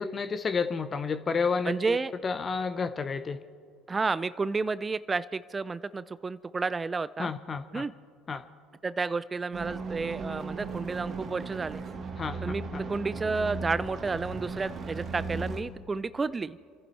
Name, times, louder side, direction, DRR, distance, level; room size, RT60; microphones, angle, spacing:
voice 1, 0.0-2.0 2.2-3.4 7.2-7.8 8.3-8.4 12.2-12.5 12.7-12.8, left 5 dB, 35° left, 11 dB, 0.7 m, -30 dB
voice 2, 1.7-2.1 3.9-7.3 7.7-7.9 8.8-11.8 12.4-16.6, right 4 dB, 25° right, 16 dB, 0.4 m, -31 dB
sound 1, 9.5-15.6, right 4 dB, 45° right, 1.9 m, -37 dB
28.5 x 11.0 x 4.2 m, 2.1 s
supercardioid pair, 80°, 0 cm